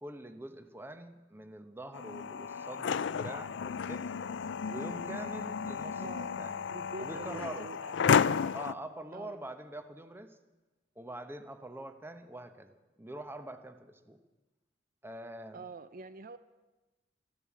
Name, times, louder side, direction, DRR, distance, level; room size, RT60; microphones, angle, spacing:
voice 1, 0.0-4.1 4.6-6.6 7.0-7.7 8.5-10.4 11.0-14.2 15.0-15.6, right 1 dB, 10° right, 9 dB, 0.9 m, -44 dB
sound 1, 1.9-8.7, left 6 dB, 70° left, 0.4 m, -32 dB
voice 2, 6.0-6.3 6.7-8.0 9.1-9.4 15.5-16.4, right 3 dB, 45° right, 12 dB, 0.5 m, -45 dB
14.0 x 10.5 x 8.5 m, 1.2 s
head